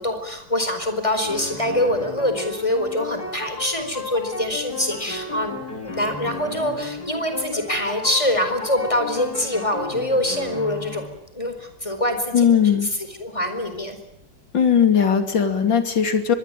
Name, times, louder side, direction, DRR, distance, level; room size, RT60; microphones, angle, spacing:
voice 1, 0.0-5.6 5.8-11.0 11.3-12.5 12.8-14.0, left 1 dB, 15° left, 7 dB, 4.6 m, -24 dB
sound 1, 1.2-11.1, left 3 dB, 55° left, 3.8 m, -34 dB
voice 2, 12.3-12.9 14.5-16.3, left 7 dB, 80° left, 6 dB, 3.5 m, -18 dB
24.0 x 21.5 x 9.2 m, 0.80 s
omnidirectional pair, 2.0 m